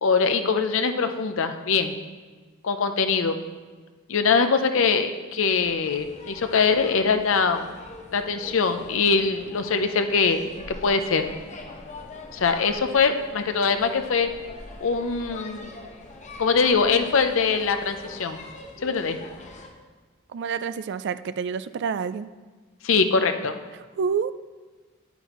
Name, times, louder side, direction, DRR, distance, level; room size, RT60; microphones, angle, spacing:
voice 1, 0.0-1.9 2.6-3.4 4.1-7.7 8.1-11.3 12.3-14.3 14.8-15.7 16.4-18.4 18.8-19.2 22.8-23.5, left 5 dB, 70° left, 8 dB, 0.6 m, -22 dB
sound 1, 5.6-19.7, left 2 dB, 35° left, 0.9 m, -43 dB
voice 2, 20.3-22.3 24.0-24.3, right 6 dB, 55° right, 14 dB, 0.3 m, -28 dB
9.9 x 9.1 x 3.0 m, 1.4 s
head